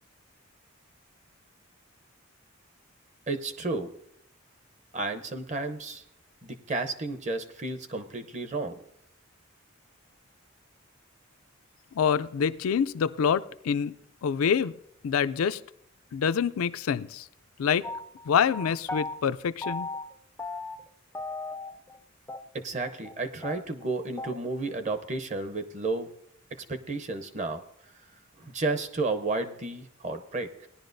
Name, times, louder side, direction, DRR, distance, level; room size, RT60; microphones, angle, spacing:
voice 1, 3.3-3.9 4.9-6.0 6.4-8.8 22.5-26.1 26.7-27.6 28.4-30.7, right 3 dB, 35° right, 7 dB, 0.7 m, -32 dB
voice 2, 11.9-13.9 14.2-14.7 15.0-15.6 16.1-17.3 17.6-17.9 18.3-19.9, left 7 dB, 80° left, 13 dB, 0.4 m, -26 dB
sound 1, 17.8-19.2 19.6-20.1 20.4-20.9 21.1-22.0 22.3-22.4 22.7-22.8 23.0-23.1 23.4-24.4, left 3 dB, 10° left, 0.3 m, -36 dB
18.5 x 11.0 x 2.6 m, 0.76 s
head